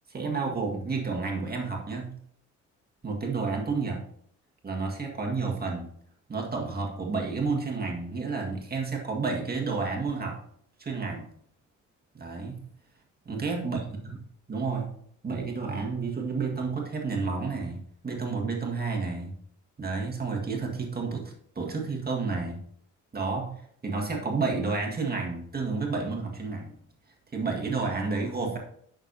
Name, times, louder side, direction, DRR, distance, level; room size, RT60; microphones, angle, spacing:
voice 1, 0.1-2.1 3.0-4.0 4.6-5.9 6.3-10.4 10.8-11.3 12.1-12.6 13.3-14.1 14.5-14.9 15.2-19.4 19.8-22.6 23.1-26.8 27.3-28.6, right 4 dB, 30° right, 0 dB, 1.8 m, -31 dB
9.6 x 6.5 x 2.8 m, 0.65 s
cardioid pair, 90°, 30 cm